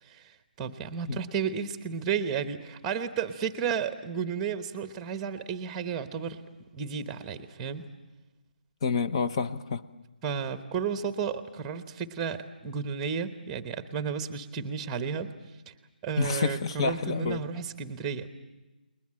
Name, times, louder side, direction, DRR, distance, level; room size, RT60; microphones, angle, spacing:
voice 1, 0.0-6.4 6.7-7.8 10.2-15.3 15.7-15.8 16.0-18.3, right 6 dB, 10° right, 11 dB, 1.0 m, -33 dB
voice 2, 8.8-9.8 16.2-17.5, left 5 dB, 30° left, 11 dB, 0.9 m, -28 dB
30.0 x 21.0 x 7.6 m, 1.1 s
hypercardioid pair, 170°, 5 cm